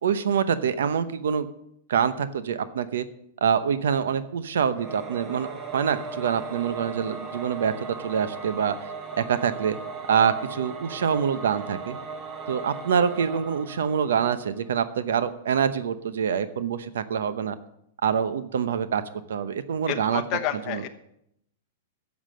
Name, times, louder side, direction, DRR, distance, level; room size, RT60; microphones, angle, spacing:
voice 1, 0.0-1.5 1.9-3.0 3.4-5.5 5.7-8.7 9.2-9.8 10.1-12.0 12.5-17.6 18.0-19.0 19.3-20.2 20.7-20.8, right 7 dB, 85° right, 12 dB, 0.8 m, -25 dB
Singing / Musical instrument, 4.7-14.8, right 4 dB, 20° right, 1.0 m, -38 dB
voice 2, 19.9-20.9, left 12 dB, 30° left, 3 dB, 1.1 m, -29 dB
11.5 x 7.3 x 7.7 m, 0.77 s
supercardioid pair, 165°, 0 cm